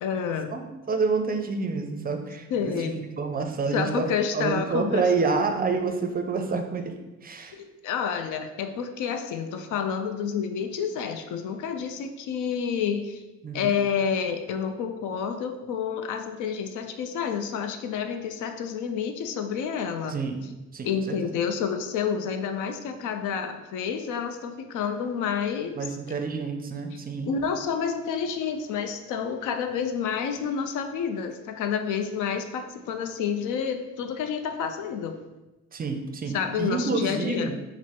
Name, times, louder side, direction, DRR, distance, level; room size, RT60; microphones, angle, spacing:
voice 1, 0.0-0.5 2.5-3.0 3.7-5.0 7.5-13.2 13.5-20.2 20.8-26.0 26.9-27.0 27.3-35.2 36.3-37.5, left 7 dB, 85° left, 7 dB, 0.5 m, -29 dB
voice 2, 0.5-2.7 3.2-4.1 4.3-6.9 7.2-7.6 13.4-13.8 20.1-20.4 20.7-21.1 25.8-27.3 35.7-37.5, right 4 dB, 30° right, 5 dB, 0.4 m, -28 dB
4.4 x 2.0 x 4.3 m, 1.1 s
cardioid pair, 90°, 30 cm